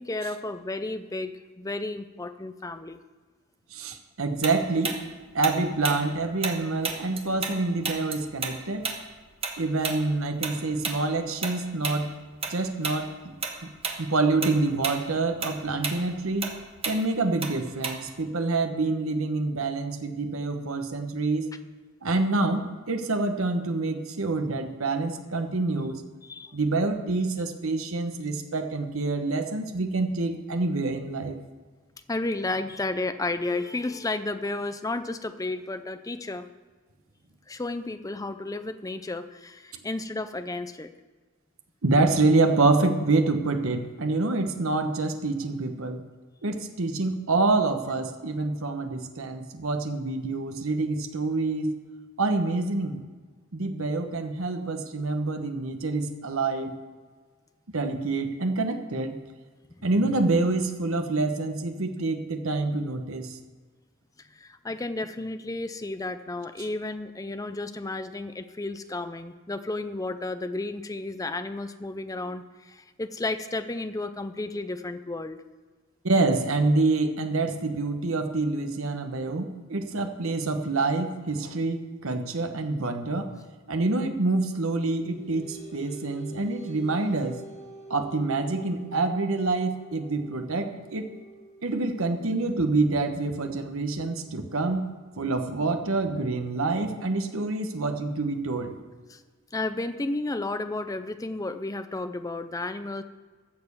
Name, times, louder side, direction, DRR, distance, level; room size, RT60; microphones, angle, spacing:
voice 1, 0.0-3.0 26.2-26.6 32.1-36.5 37.5-40.9 59.8-59.9 64.2-75.4 99.1-99.2 99.5-103.0, left 2 dB, 15° left, 10 dB, 0.5 m, -32 dB
voice 2, 3.7-5.0 5.3-8.8 9.6-12.1 12.5-13.3 13.6-13.7 14.0-16.5 16.8-21.5 22.0-26.0 26.5-31.4 41.8-46.0 46.4-51.8 52.2-53.0 53.5-56.8 57.7-59.2 59.8-63.4 76.0-83.3 83.7-87.4 87.9-91.1 91.6-94.8 95.2-98.7, right 3 dB, 70° right, 6 dB, 1.1 m, -27 dB
Tick-tock, 4.4-7.6 7.8-12.6 12.8-13.0 13.4-14.0 14.3-18.3, right 5 dB, 25° right, 1.2 m, -32 dB
sound 1, 84.8-95.7, right 2 dB, 30° left, 1.5 m, -47 dB
13.0 x 6.8 x 7.0 m, 1.4 s
head